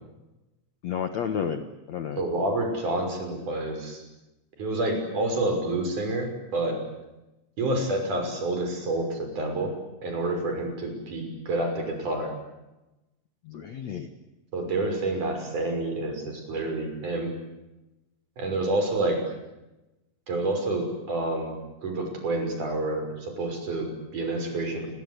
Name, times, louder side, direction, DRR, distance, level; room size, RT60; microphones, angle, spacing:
voice 1, 0.8-2.3 13.4-14.1, left 7 dB, 80° left, 8 dB, 1.5 m, -31 dB
voice 2, 2.2-4.0 4.6-6.8 7.6-9.7 10.0-12.3 14.5-17.4 18.4-19.3 20.3-24.9, right 2 dB, 40° right, 5 dB, 7.2 m, -28 dB
30.0 x 22.5 x 8.2 m, 0.99 s
omnidirectional pair, 5.4 m